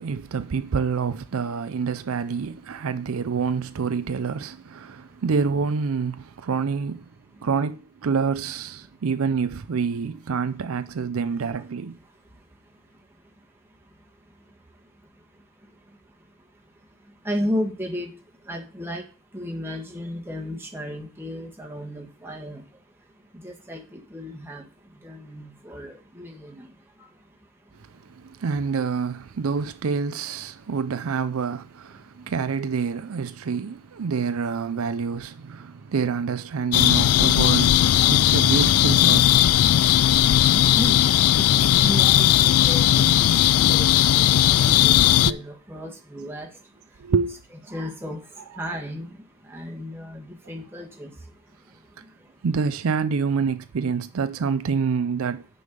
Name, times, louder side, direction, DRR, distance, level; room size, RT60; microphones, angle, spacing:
voice 1, 0.0-7.0 7.4-12.0 28.1-39.4 45.3-45.4 47.0-47.4 52.4-55.4, right 5 dB, 70° right, 0.5 m, -27 dB
voice 2, 17.2-18.1 18.4-19.0 19.3-22.6 23.4-24.6 25.0-26.7 40.5-41.1 41.4-46.5 47.7-48.2 48.6-51.1, equal, 10° right, 1.5 m, -34 dB
sound 1, 36.7-45.3, left 12 dB, 80° left, 0.3 m, -17 dB
6.5 x 5.5 x 6.8 m
head